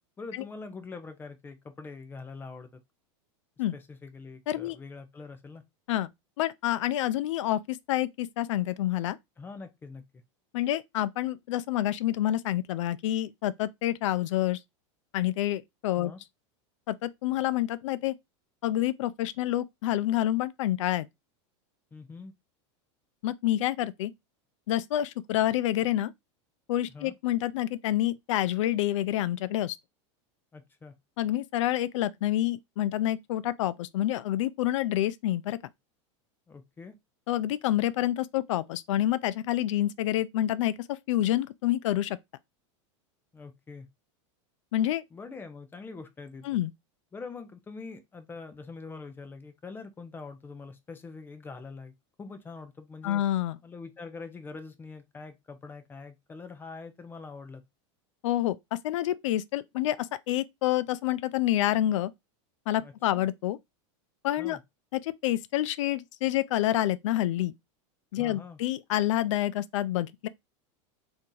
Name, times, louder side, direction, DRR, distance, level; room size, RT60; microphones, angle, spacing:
voice 1, 0.2-2.8 3.7-5.6 9.4-10.0 16.0-16.2 21.9-22.3 26.9-27.1 30.5-30.9 36.5-37.0 43.3-43.9 45.1-46.5 47.1-51.9 52.2-53.2 53.6-57.6 62.8-63.2 64.4-64.6 68.1-68.6, left 4 dB, 15° left, 0.5 m, -44 dB
voice 2, 6.4-9.2 10.5-14.6 15.1-16.1 16.9-18.1 18.6-21.1 23.2-24.1 24.7-26.1 26.7-29.8 31.2-35.6 37.3-42.2 44.7-45.0 46.4-46.7 53.0-53.6 58.2-62.1 62.7-63.6 64.2-64.6 64.9-67.5 68.1-70.3, left 13 dB, 80° left, 0.4 m, -28 dB
2.8 x 2.6 x 3.7 m
supercardioid pair, 140°, 16 cm